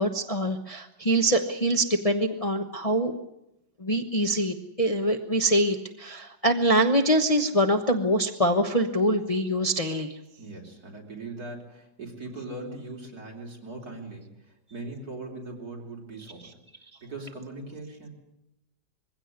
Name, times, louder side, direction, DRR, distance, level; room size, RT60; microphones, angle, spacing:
voice 1, 0.0-3.1 3.8-10.2, right 1 dB, 25° left, 3 dB, 1.0 m, -24 dB
voice 2, 10.4-16.6 17.0-18.1, right 2 dB, 55° right, 0 dB, 4.4 m, -40 dB
22.0 x 16.5 x 9.6 m, 0.87 s
omnidirectional pair, 1.9 m